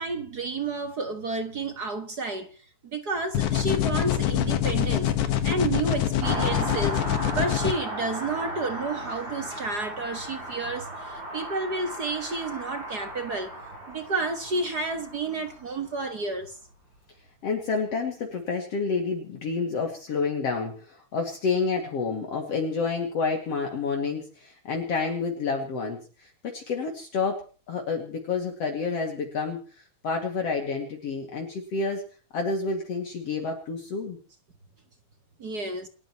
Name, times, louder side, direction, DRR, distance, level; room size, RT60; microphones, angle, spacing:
voice 1, 0.0-2.5 2.9-5.1 5.4-7.0 7.3-13.5 13.9-16.5 35.4-35.9, right 3 dB, 45° right, 1.5 m, -30 dB
sound 1, 3.3-7.7, left 10 dB, 85° left, 2.9 m, -25 dB
Car passing by, 6.2-16.2 16.4-16.5, right 1 dB, 75° right, 7.9 m, -36 dB
voice 2, 17.4-32.0 32.3-34.2, left 4 dB, 55° left, 3.3 m, -29 dB
29.0 x 13.5 x 3.1 m
omnidirectional pair, 3.4 m